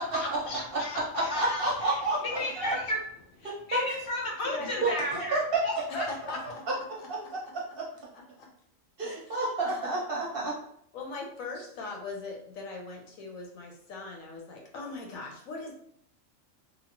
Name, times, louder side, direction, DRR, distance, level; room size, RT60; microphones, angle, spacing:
voice 1, 0.0-3.0 3.3-5.2 5.6-6.4, left 1 dB, 65° left, 0 dB, 0.8 m, -34 dB
voice 2, 1.1-2.7 3.4-3.9 4.8-5.6 7.1-7.2 7.5-7.9 9.0-10.6, right 2 dB, 55° right, -3 dB, 0.7 m, -30 dB
voice 3, 4.4-4.9 5.9-7.5 8.1-8.5 9.3-9.4 9.7-9.9 10.9-15.7, left 3 dB, 80° left, 0 dB, 1.1 m, -41 dB
2.9 x 2.2 x 2.8 m, 0.67 s
omnidirectional pair, 1.4 m